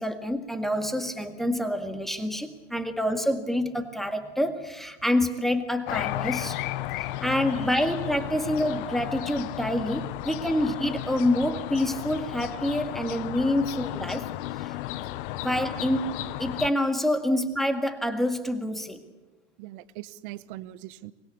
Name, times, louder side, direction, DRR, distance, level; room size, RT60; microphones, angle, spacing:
voice 1, 0.0-6.6 6.9-14.3 14.6-15.1 15.3-19.0, left 1 dB, ahead, 7 dB, 1.8 m, -27 dB
sound 1, 5.9-16.7, left 15 dB, 45° left, 0.9 m, -34 dB
voice 2, 19.6-21.1, right 16 dB, 45° right, 16 dB, 1.2 m, -41 dB
24.5 x 21.0 x 8.4 m, 1.2 s
hypercardioid pair, 130°, 35 cm